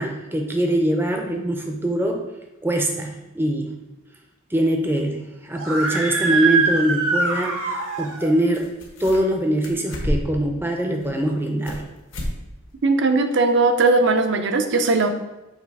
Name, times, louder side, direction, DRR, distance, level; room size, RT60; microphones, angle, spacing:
voice 1, 0.0-2.2 2.6-3.7 4.5-8.7 9.0-11.8, right 1 dB, 10° right, 3 dB, 0.5 m, -23 dB
Screaming, 5.5-8.3, right 4 dB, 75° right, 0.9 m, -23 dB
sound 1, 8.2-8.3 8.5-9.4 9.6-10.4 10.9-11.8 12.1-12.4 12.7-12.8 13.3-13.4, equal, 70° left, 1.1 m, -29 dB
voice 2, 12.8-15.1, right 3 dB, 55° right, 7 dB, 0.5 m, -18 dB
6.5 x 3.2 x 4.6 m, 1.0 s
head